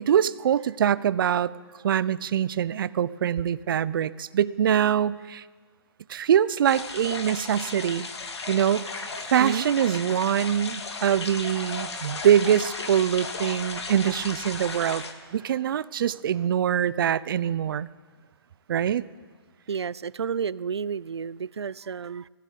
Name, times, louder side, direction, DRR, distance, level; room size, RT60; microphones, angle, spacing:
voice 1, 0.0-1.5 1.8-5.4 6.1-8.1 8.5-9.0 9.3-15.0 15.3-17.9 18.7-19.0, right 9 dB, 55° right, 0.8 m, -24 dB
sound 1, 6.6-15.1, left 3 dB, 85° left, 2.6 m, -35 dB
voice 2, 11.8-12.3 19.7-22.3, right 6 dB, 85° right, 0.6 m, -31 dB
19.5 x 16.0 x 8.5 m
hypercardioid pair, 145°, 14 cm